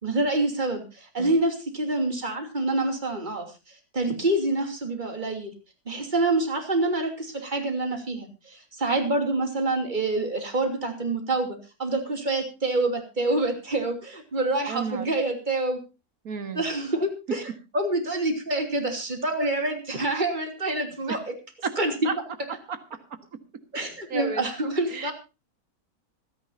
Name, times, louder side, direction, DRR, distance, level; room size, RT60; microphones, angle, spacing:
voice 1, 0.0-3.5 3.9-5.5 5.9-15.8 16.5-17.4 17.7-21.3 21.8-22.1 23.7-25.1, right 2 dB, 30° right, 4 dB, 3.0 m, -27 dB
voice 2, 14.7-15.1 16.2-16.6 21.1-21.2 21.6-21.8 22.0-22.2 22.7-22.8 24.1-24.5 24.9-25.1, right 5 dB, 70° right, 9 dB, 2.1 m, -32 dB
26.0 x 10.5 x 2.7 m, 0.30 s
omnidirectional pair, 1.6 m